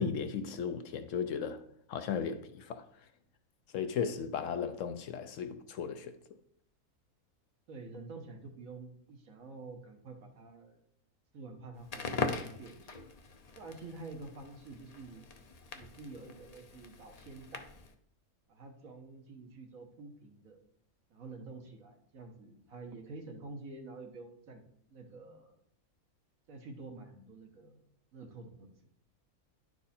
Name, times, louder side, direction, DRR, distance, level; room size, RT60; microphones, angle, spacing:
voice 1, 0.0-1.6 1.9-2.8 3.7-6.1, left 6 dB, 65° left, 0.9 m, -35 dB
voice 2, 7.7-10.8 11.3-13.0 13.5-15.3 15.7-17.7 18.5-20.6 21.1-24.6 24.9-25.6 26.5-27.8 28.1-28.7, right 3 dB, 70° right, 1.6 m, -48 dB
Crackle, 11.8-17.9, left 4 dB, 40° left, 0.5 m, -41 dB
10.5 x 4.7 x 4.2 m
omnidirectional pair, 1.5 m